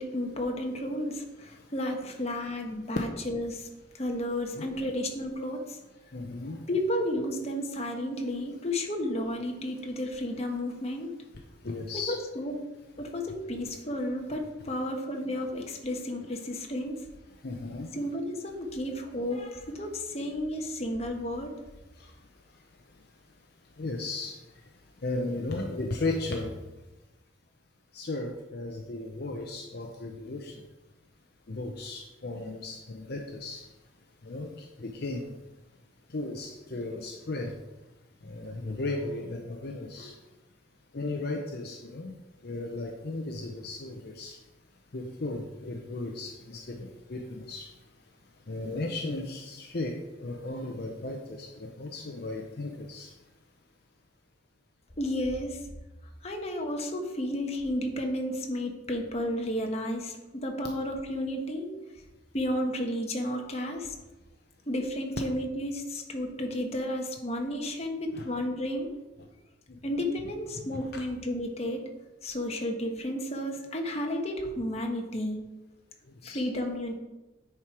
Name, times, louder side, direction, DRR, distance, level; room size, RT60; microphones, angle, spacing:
voice 1, 0.0-3.7 3.9-5.8 6.7-11.1 11.9-12.6 13.0-17.0 17.9-21.5 55.0-55.6 56.2-61.8 62.3-63.9 64.7-68.9 69.8-71.8 72.2-75.4 76.2-76.9, left 1 dB, 35° left, 2 dB, 1.2 m, -32 dB
voice 2, 6.1-6.7 11.6-12.2 17.4-17.9 22.0-22.1 23.8-24.6 25.0-26.5 27.9-30.6 31.5-33.6 34.2-35.3 36.1-37.6 38.2-40.2 40.9-42.1 42.4-44.4 44.9-47.7 48.5-53.1 68.1-68.2 70.6-71.0 76.1-76.4, left 2 dB, 55° left, 2 dB, 0.7 m, -36 dB
9.5 x 4.5 x 4.8 m, 1.1 s
head